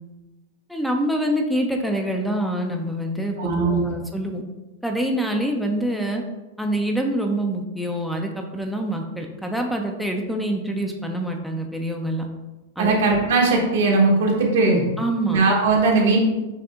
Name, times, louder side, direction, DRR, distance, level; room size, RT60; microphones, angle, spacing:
voice 1, 0.7-4.4 4.8-6.2 6.6-12.3 12.8-12.9 15.0-15.4, right 1 dB, ahead, 2 dB, 0.5 m, -25 dB
voice 2, 3.4-3.9 12.8-14.8 15.3-16.2, right 3 dB, 75° right, -1 dB, 1.1 m, -19 dB
5.9 x 2.7 x 2.4 m, 1.1 s
hypercardioid pair, 120°, 0 cm